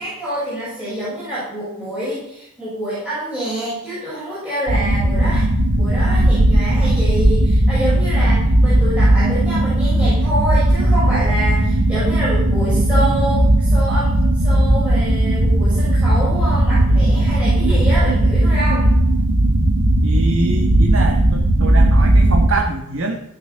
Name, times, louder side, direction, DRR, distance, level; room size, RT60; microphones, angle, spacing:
voice 1, 0.0-5.4 5.7-18.9, right 1 dB, 5° right, -12 dB, 6.4 m, -26 dB
sound 1, 4.7-22.5, right 1 dB, 85° right, 1.6 m, -16 dB
voice 2, 20.0-23.2, right 3 dB, 65° right, 2 dB, 1.4 m, -25 dB
16.0 x 8.0 x 5.8 m, 0.86 s
head